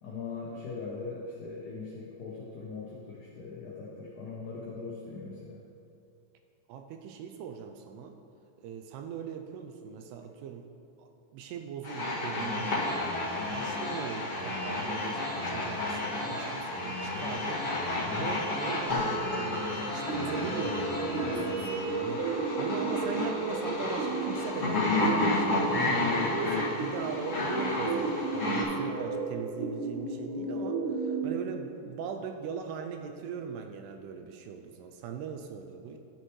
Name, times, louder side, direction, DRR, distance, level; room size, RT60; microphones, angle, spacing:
voice 1, 0.0-5.6 18.0-18.3 21.2-21.5 25.8-26.1, left 4 dB, 80° left, -6 dB, 1.8 m, -40 dB
voice 2, 6.7-8.2 8.6-10.7 11.0-13.1 13.5-36.0, right 7 dB, 85° right, 5 dB, 2.4 m, -40 dB
sound 1, 11.8-28.6, left 2 dB, 60° left, 0.7 m, -32 dB
sound 2, 12.3-21.8, left 1 dB, 30° left, 1.9 m, -39 dB
sound 3, 20.1-31.3, right 3 dB, 70° right, 2.1 m, -34 dB
13.5 x 6.6 x 3.1 m, 2.6 s
omnidirectional pair, 4.9 m